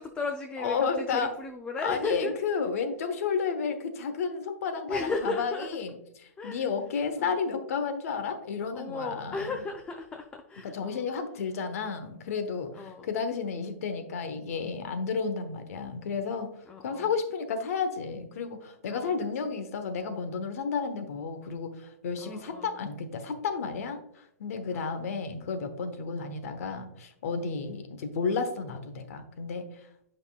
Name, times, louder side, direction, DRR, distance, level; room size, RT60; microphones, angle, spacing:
voice 1, 0.0-2.3 4.9-5.7 6.4-6.7 7.2-7.4 8.7-11.1 12.7-13.1 16.6-17.1 18.9-19.1 19.4-19.5 22.2-22.8 24.7-25.1, left 3 dB, 10° left, 5 dB, 0.4 m, -35 dB
voice 2, 0.6-1.3 1.8-5.9 6.4-9.5 10.7-16.5 16.8-29.6, left 5 dB, 65° left, 8 dB, 1.1 m, -32 dB
7.9 x 5.3 x 2.4 m, 0.74 s
hypercardioid pair, 140°, 9 cm